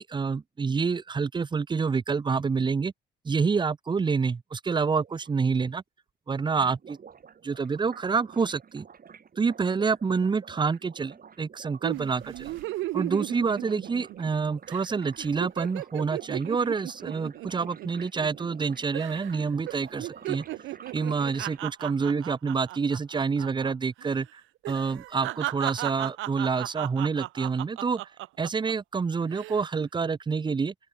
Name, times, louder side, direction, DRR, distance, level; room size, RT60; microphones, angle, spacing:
voice 1, 0.0-2.9 3.2-5.8 6.3-7.0 7.4-8.9 9.4-12.6 12.9-20.4 20.9-24.4 24.7-28.0 28.4-30.7, right 5 dB, 25° right, 0.6 m, -27 dB
sound 1, 5.0-5.3 6.6-21.6, right 7 dB, 45° right, 6.2 m, -50 dB
sound 2, 11.8-14.4 14.7-14.9 15.2-18.6 18.9-19.4 19.7-23.7 24.0-24.2 24.6-28.7 29.2-29.6, right 17 dB, 80° right, 0.4 m, -35 dB
open air
cardioid pair, 90°, 20 cm